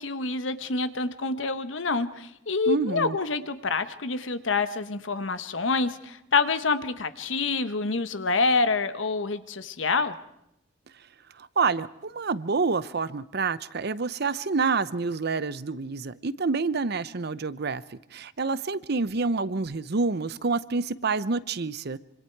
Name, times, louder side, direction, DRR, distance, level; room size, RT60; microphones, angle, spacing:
voice 1, 0.0-10.1, left 4 dB, 75° left, 11 dB, 1.2 m, -27 dB
voice 2, 2.7-3.2 11.4-17.8 18.1-22.0, right 4 dB, 55° right, 16 dB, 0.8 m, -28 dB
26.0 x 25.5 x 4.7 m, 0.80 s
head